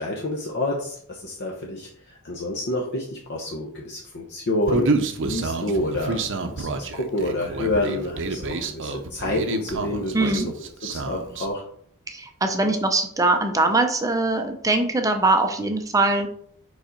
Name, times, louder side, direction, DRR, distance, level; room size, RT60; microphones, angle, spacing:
voice 1, 0.0-1.9 2.2-4.9 5.2-10.5 10.8-11.6, left 1 dB, 50° left, -1 dB, 0.9 m, -28 dB
Human voice, 4.7-11.5, right 3 dB, 60° right, 0.7 m, -28 dB
voice 2, 10.1-10.5 12.1-16.3, right 2 dB, 15° right, 5 dB, 0.6 m, -22 dB
5.3 x 4.0 x 5.1 m, 0.62 s
head